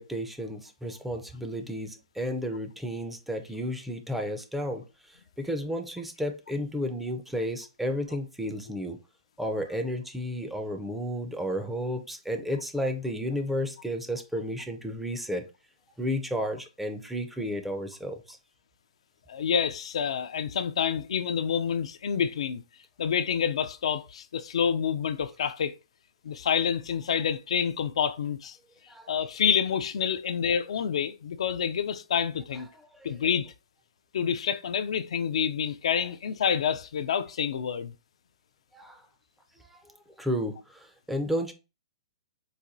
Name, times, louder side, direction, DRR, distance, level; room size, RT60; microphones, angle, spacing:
voice 1, 0.0-9.0 9.4-15.4 16.0-18.4 28.9-29.1 32.5-33.2 35.9-36.1 38.7-39.0 39.7-39.8 40.2-41.5, equal, 5° right, 0.4 m, -32 dB
voice 2, 19.3-22.6 23.0-25.8 26.2-28.6 29.1-32.7 33.0-33.5 34.1-37.9, left 7 dB, 70° left, 0.3 m, -28 dB
4.1 x 2.2 x 2.5 m
hypercardioid pair, 145°, 3 cm